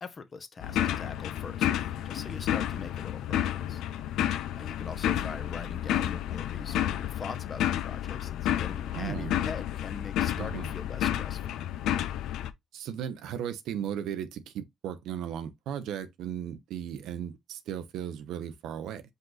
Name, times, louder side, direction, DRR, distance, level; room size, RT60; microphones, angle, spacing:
voice 1, 0.0-3.8 4.5-11.4, left 4 dB, 40° left, 0.9 m, -42 dB
sound 1, 0.6-12.5, left 11 dB, 85° left, 0.5 m, -31 dB
voice 2, 8.9-9.4 10.4-10.7 12.7-19.0, right 9 dB, 85° right, 0.8 m, -36 dB
5.3 x 2.5 x 3.9 m
cardioid pair, 90°, 0 cm